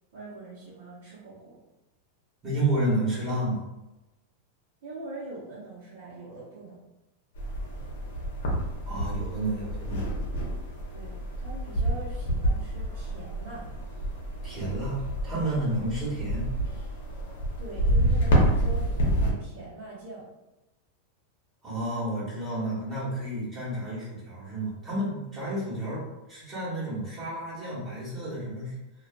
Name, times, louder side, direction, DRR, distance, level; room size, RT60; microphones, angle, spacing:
voice 1, 0.1-1.6 4.8-6.8 10.9-13.6 17.6-20.3, right 2 dB, 70° right, -9 dB, 0.8 m, -42 dB
voice 2, 2.4-3.6 8.8-10.1 14.4-16.5 21.6-28.8, right 1 dB, 25° right, -8 dB, 1.1 m, -31 dB
sound 1, 7.3-19.3, right 1 dB, 75° left, 0.7 m, -28 dB
2.5 x 2.4 x 2.3 m, 0.99 s
hypercardioid pair, 125°, 0 cm